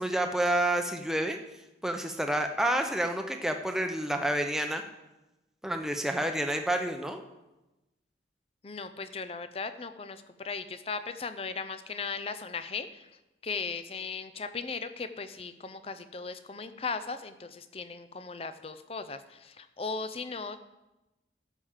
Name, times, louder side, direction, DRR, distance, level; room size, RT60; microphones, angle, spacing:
voice 1, 0.0-1.4 1.8-4.8 5.6-7.2, right 1 dB, 5° right, 4 dB, 0.7 m, -29 dB
voice 2, 8.6-13.1 13.4-20.6, left 4 dB, 35° left, 10 dB, 0.5 m, -37 dB
12.0 x 5.0 x 7.2 m, 1.0 s
head